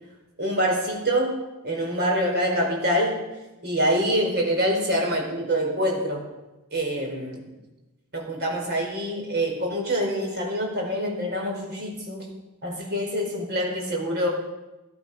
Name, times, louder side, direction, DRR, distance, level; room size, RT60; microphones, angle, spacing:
voice 1, 0.4-3.2 3.6-6.2 6.7-7.5 8.1-12.3 12.6-14.3, equal, 50° right, 0 dB, 4.5 m, -25 dB
17.5 x 12.5 x 5.4 m, 1.1 s
head